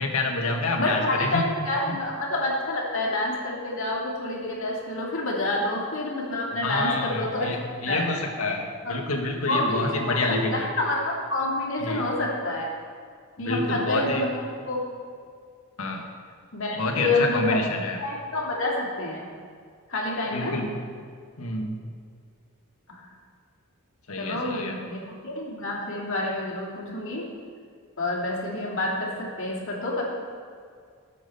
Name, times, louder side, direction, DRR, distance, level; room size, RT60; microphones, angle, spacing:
voice 1, 0.0-1.5 1.9-2.0 6.6-10.7 11.8-12.0 13.4-14.2 15.8-16.1 16.8-18.0 20.3-20.8 21.4-21.8 24.1-24.8, left 2 dB, 80° left, 2 dB, 1.8 m, -28 dB
voice 2, 0.8-7.5 7.9-8.1 8.9-9.0 9.5-10.2 10.5-12.7 13.4-14.3 14.7-14.8 16.5-17.6 18.0-19.3 19.9-20.5 22.9-23.0 24.2-27.2 28.0-30.0, left 2 dB, 60° left, -3 dB, 2.7 m, -28 dB
15.0 x 7.7 x 5.6 m, 2.2 s
head